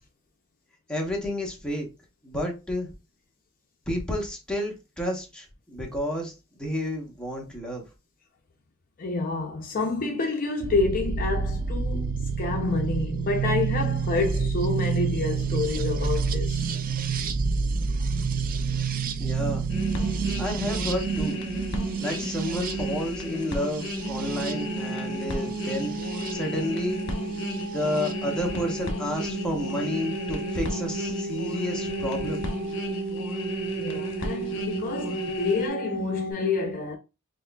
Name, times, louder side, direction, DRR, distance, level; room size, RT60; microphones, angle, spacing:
voice 1, 0.9-1.9 2.2-2.9 3.9-6.3 6.6-7.8 19.2-19.7 20.4-21.4 22.0-25.9 26.3-27.0 27.6-32.4, left 1 dB, 5° left, 0.9 m, -30 dB
voice 2, 9.0-16.6 33.8-37.0, left 3 dB, 40° left, 0.5 m, -28 dB
sound 1, 10.6-26.3 27.5-28.1, right 5 dB, 40° right, 0.4 m, -29 dB
sound 2, 19.7-35.7, left 2 dB, 60° left, 1.0 m, -34 dB
sound 3, 24.0-36.3, right 4 dB, 75° right, 1.5 m, -34 dB
6.0 x 2.5 x 2.2 m
head